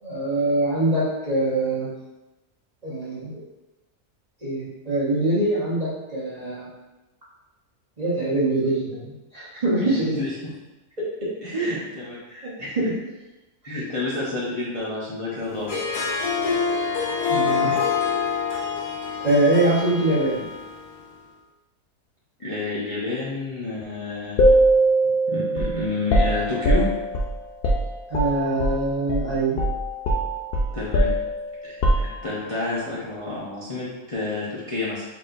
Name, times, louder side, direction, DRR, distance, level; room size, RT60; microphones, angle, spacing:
voice 1, 0.0-1.9 2.8-3.4 4.4-6.7 8.0-10.1 11.5-11.7 12.3-12.9 17.3-17.8 19.2-20.4 28.1-29.6, right 2 dB, 30° right, -9 dB, 1.1 m, -23 dB
voice 2, 9.8-10.5 11.4-12.2 12.6-12.8 13.6-16.0 16.5-16.6 22.4-24.4 25.3-26.9 30.7-31.1 31.6-35.0, left 3 dB, 30° left, -9 dB, 0.7 m, -30 dB
Harp, 15.5-21.0, left 6 dB, 85° left, 1.3 m, -26 dB
sound 1, 24.4-28.8 29.1-29.3 29.6-32.5, right 1 dB, 65° left, 0.5 m, -22 dB
4.2 x 4.0 x 2.6 m, 1.1 s
omnidirectional pair, 1.6 m